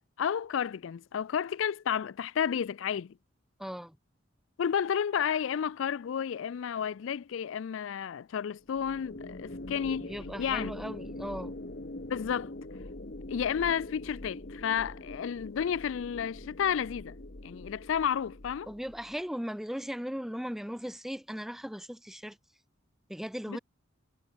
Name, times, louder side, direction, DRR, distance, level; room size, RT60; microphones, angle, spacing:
voice 1, 0.2-3.1 4.6-10.1 10.4-10.7 12.1-12.5 13.3-17.2 17.4-18.7 23.5-23.6, left 8 dB, 70° left, 0.4 m, -31 dB
voice 2, 3.6-4.0 10.0-11.5 18.7-22.4 23.1-23.6, equal, ahead, 0.6 m, -38 dB
sound 1, 8.7-19.2, left 1 dB, 50° left, 1.4 m, -43 dB
head